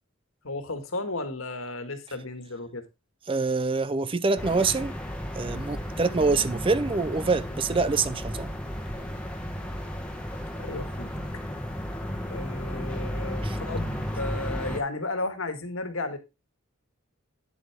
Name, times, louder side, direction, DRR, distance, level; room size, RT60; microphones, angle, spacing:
voice 1, 0.4-2.8 10.6-11.1 12.3-16.2, left 2 dB, 75° left, 1.8 m, -33 dB
voice 2, 3.3-5.0 5.4-8.5 13.4-13.6, right 4 dB, 25° right, 0.5 m, -25 dB
sound 1, 4.4-14.8, equal, 5° left, 1.5 m, -34 dB
9.4 x 7.6 x 3.5 m
head